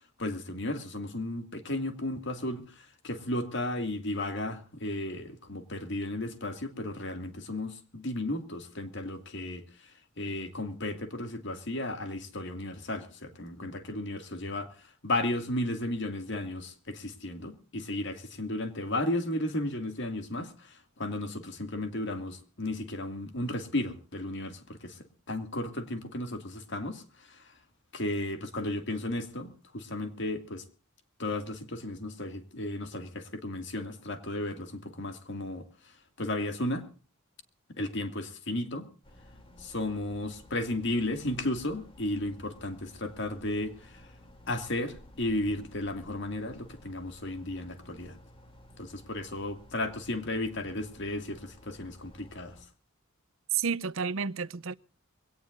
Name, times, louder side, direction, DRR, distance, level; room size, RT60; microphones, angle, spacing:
voice 1, 0.0-25.0 25.3-27.5 27.9-30.6 31.2-36.9 37.7-38.9 39.6-44.1 44.5-48.2 48.8-52.6, left 1 dB, 60° left, 2.3 m, -34 dB
sound 1, 39.0-52.6, left 1 dB, 25° left, 2.9 m, -54 dB
voice 2, 53.5-54.7, right 6 dB, 75° right, 0.6 m, -30 dB
23.0 x 17.5 x 2.6 m
head